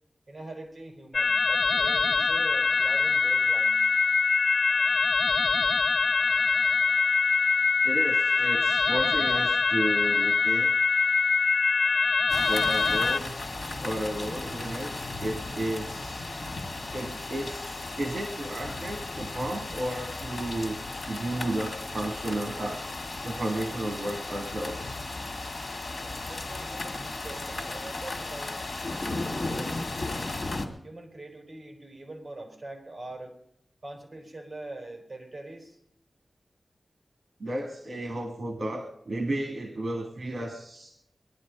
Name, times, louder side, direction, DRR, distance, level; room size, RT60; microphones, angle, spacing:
voice 1, 0.3-3.9 26.3-30.3 30.8-33.3 33.8-35.8, right 2 dB, 35° right, 3 dB, 4.6 m, -43 dB
sound 1, 1.1-13.2, left 4 dB, 85° left, 0.6 m, -23 dB
voice 2, 7.8-10.7 12.5-13.3 13.8-16.3 16.9-22.8 23.2-25.0 37.4-40.9, right 1 dB, 65° right, 4 dB, 1.9 m, -33 dB
sound 2, 12.3-30.7, left 2 dB, 60° left, 2.3 m, -35 dB
20.5 x 11.5 x 5.2 m, 0.75 s
wide cardioid pair, 105°, 0 cm